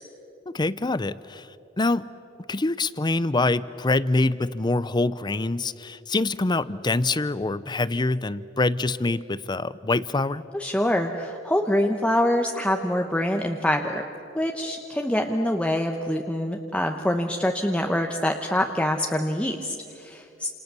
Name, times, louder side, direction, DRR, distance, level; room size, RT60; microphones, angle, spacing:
voice 1, 0.5-1.5 1.8-2.1 2.5-10.4, left 2 dB, 20° left, 16 dB, 0.6 m, -25 dB
voice 2, 10.5-14.0 14.3-20.5, left 1 dB, 5° left, 2 dB, 1.0 m, -25 dB
29.0 x 27.5 x 6.9 m, 2.8 s
head